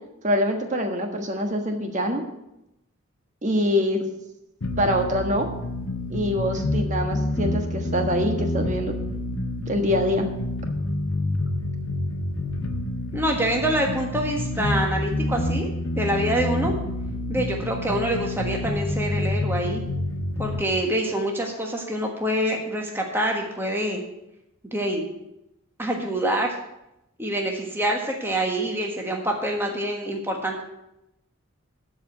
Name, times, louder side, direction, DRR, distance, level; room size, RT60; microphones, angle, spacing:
voice 1, 0.2-2.2 3.4-4.0 4.8-5.5 6.1-8.9 9.7-10.3, equal, 35° right, 4 dB, 1.4 m, -24 dB
sound 1, 4.6-20.6, left 1 dB, 60° left, 1.0 m, -28 dB
voice 2, 13.1-15.7 16.0-16.7 17.3-19.8 20.4-24.0 24.7-25.1 25.8-26.5 27.2-30.6, right 1 dB, 10° right, 1 dB, 1.4 m, -26 dB
12.5 x 5.2 x 8.2 m, 0.88 s
head